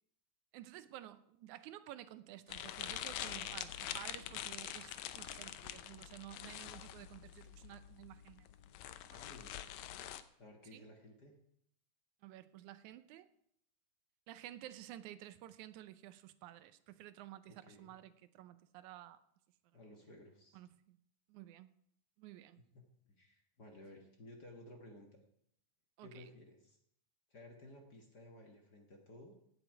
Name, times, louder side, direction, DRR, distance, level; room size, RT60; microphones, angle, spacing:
voice 1, 0.5-8.5 9.1-9.3 10.7-10.9 12.2-13.3 14.3-19.2 20.5-21.0 21.3-21.7 22.2-22.6 26.0-26.3, right 13 dB, 85° right, 13 dB, 2.1 m, -53 dB
sound 1, 2.5-10.2, left 12 dB, 75° left, 1.9 m, -45 dB
voice 2, 9.2-9.6 10.4-11.3 17.5-17.9 19.7-20.6 22.7-25.1 26.0-26.8 27.3-29.3, left 1 dB, 40° left, 2 dB, 1.6 m, -56 dB
16.5 x 9.9 x 4.7 m, 0.71 s
omnidirectional pair, 3.4 m